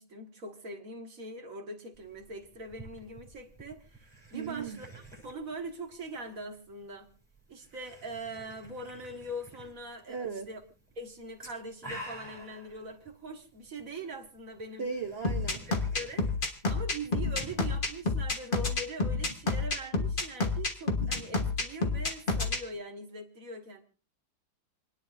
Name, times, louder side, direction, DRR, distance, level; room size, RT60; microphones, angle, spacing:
voice 1, 0.0-7.1 7.5-10.6 11.0-14.9 15.7-16.3 16.7-23.8, right 1 dB, 40° right, 4 dB, 1.8 m, -42 dB
sound 1, 1.9-18.2, right 1 dB, ahead, 7.4 m, -51 dB
voice 2, 4.3-4.8 10.1-10.5 14.8-15.7, right 5 dB, 80° right, 6 dB, 0.5 m, -37 dB
sound 2, 15.2-22.6, left 3 dB, 30° left, 1.4 m, -29 dB
28.5 x 10.0 x 2.6 m, 0.36 s
omnidirectional pair, 2.3 m